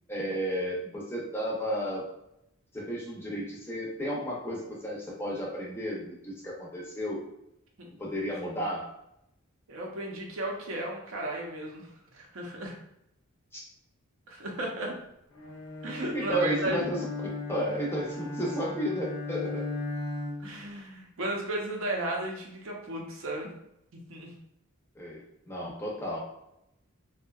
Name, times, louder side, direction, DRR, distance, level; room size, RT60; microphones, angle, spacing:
voice 1, 0.1-2.1 2.7-7.2 8.0-8.9 13.5-13.6 16.1-17.0 17.5-19.7 25.0-26.2, equal, 10° left, -4 dB, 0.5 m, -33 dB
voice 2, 9.7-12.8 14.3-15.0 15.8-16.9 20.4-23.5 24.1-24.3, right 1 dB, 65° right, 0 dB, 0.6 m, -34 dB
Bowed string instrument, 15.3-20.6, left 2 dB, 70° left, 0.6 m, -36 dB
2.6 x 2.1 x 2.3 m, 0.81 s
head